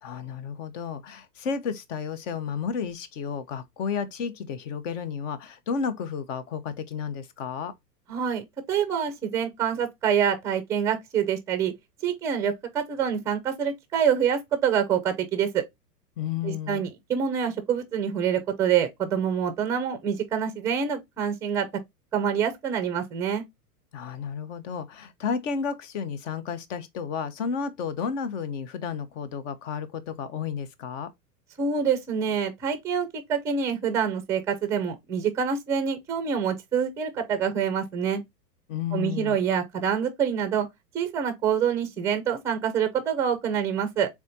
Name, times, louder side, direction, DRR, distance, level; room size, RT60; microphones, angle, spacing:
voice 1, 0.0-7.7 16.2-16.9 23.9-31.1 38.7-39.4, left 6 dB, 50° left, 0.9 m, -32 dB
voice 2, 8.1-11.7 12.0-15.6 16.4-21.7 22.1-23.4 31.6-38.2 38.9-40.7 40.9-44.1, right 7 dB, 5° right, 0.4 m, -26 dB
4.1 x 3.6 x 2.7 m
hypercardioid pair, 125°, 48 cm